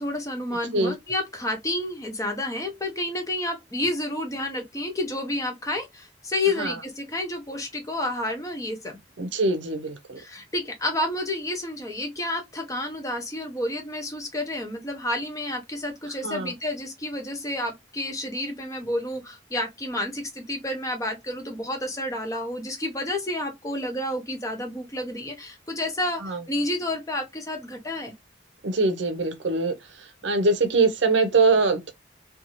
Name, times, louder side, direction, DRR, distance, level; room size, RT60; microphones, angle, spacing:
voice 1, 0.0-9.0 10.2-28.1, left 1 dB, 15° left, 0.6 m, -30 dB
voice 2, 9.2-10.2 16.2-16.5 26.2-26.4 28.6-29.7 30.2-31.9, right 3 dB, 65° right, 0.6 m, -23 dB
2.6 x 2.3 x 2.8 m
head